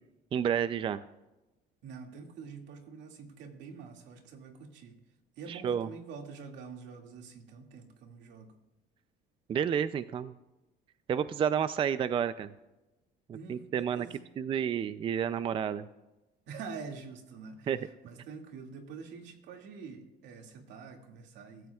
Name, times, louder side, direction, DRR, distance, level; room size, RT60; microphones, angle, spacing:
voice 1, 0.3-1.0 5.5-5.9 9.5-10.3 11.1-12.5 13.3-14.1 14.4-15.8 17.7-17.8, right 8 dB, 30° right, 13 dB, 0.4 m, -30 dB
voice 2, 1.8-5.0 5.4-8.5 13.3-14.2 16.5-21.7, right 5 dB, 80° right, 3 dB, 2.2 m, -46 dB
24.0 x 14.0 x 2.4 m, 1.0 s
cardioid pair, 150°, 18 cm